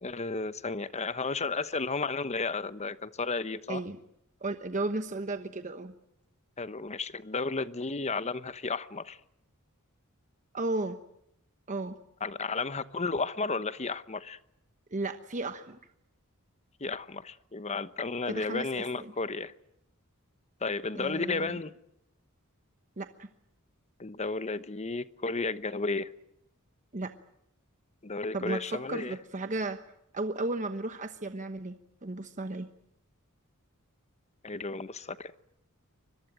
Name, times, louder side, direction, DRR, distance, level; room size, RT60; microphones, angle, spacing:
voice 1, 0.0-3.8 6.6-9.2 12.2-14.4 16.8-19.5 20.6-21.7 24.0-26.1 28.0-29.1 34.4-35.3, left 3 dB, 30° left, 1.0 m, -33 dB
voice 2, 4.4-5.9 10.5-11.0 11.7-12.0 14.9-15.8 18.3-19.1 21.0-21.6 23.0-23.3 26.9-27.1 28.3-29.8 30.1-32.7, right 2 dB, 35° right, 1.1 m, -34 dB
25.0 x 21.5 x 8.9 m
head